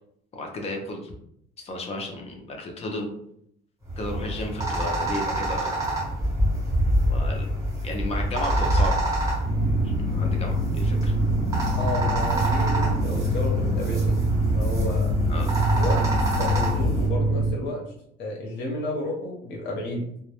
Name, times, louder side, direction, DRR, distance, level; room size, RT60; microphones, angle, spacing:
voice 1, 0.3-1.1 1.6-3.1 4.0-5.8 7.1-7.5 7.8-9.0 10.1-11.1 15.3-15.5, left 2 dB, 30° left, 2 dB, 0.5 m, -33 dB
sound 1, 3.9-17.1, right 1 dB, 15° right, 1.0 m, -26 dB
sound 2, 9.4-17.5, equal, 60° right, 0.7 m, -25 dB
voice 2, 11.8-15.2 15.7-16.0 16.4-17.8 18.2-20.1, left 1 dB, 65° left, -1 dB, 0.8 m, -32 dB
2.2 x 2.0 x 2.8 m, 0.72 s
cardioid pair, 130°, 19 cm